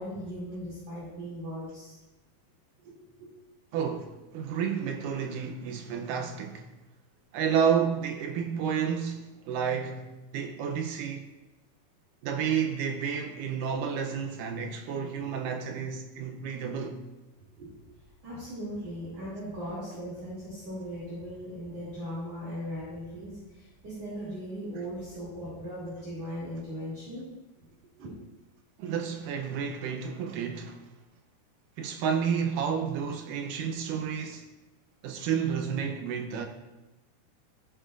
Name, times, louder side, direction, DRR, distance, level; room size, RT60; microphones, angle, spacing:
voice 1, 0.0-2.0 2.8-2.9 3.2-3.3 17.6-17.7 18.2-27.2 27.6-28.1, equal, 45° right, 3.7 m, -38 dB
voice 2, 3.7-6.7 7.3-11.3 12.2-17.0 28.8-30.9 31.8-34.5 35.0-36.5, right 7 dB, 80° right, 2.0 m, -31 dB
15.0 x 7.6 x 2.5 m
omnidirectional pair, 4.3 m